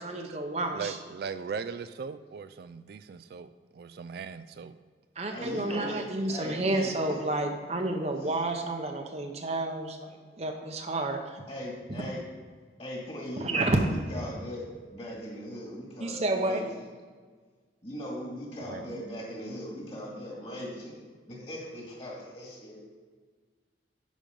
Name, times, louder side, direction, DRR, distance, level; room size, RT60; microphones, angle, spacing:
voice 1, 0.0-1.0 5.2-11.4 13.4-13.8 16.0-16.6, right 2 dB, 35° right, 4 dB, 0.8 m, -30 dB
voice 2, 0.7-4.7 18.6-19.0, right 5 dB, 55° right, 12 dB, 0.3 m, -39 dB
voice 3, 5.3-7.2 8.2-8.3 11.5-12.2 12.8-16.9 17.8-22.8, equal, 30° left, -2 dB, 2.2 m, -39 dB
10.0 x 5.3 x 5.2 m, 1.5 s
head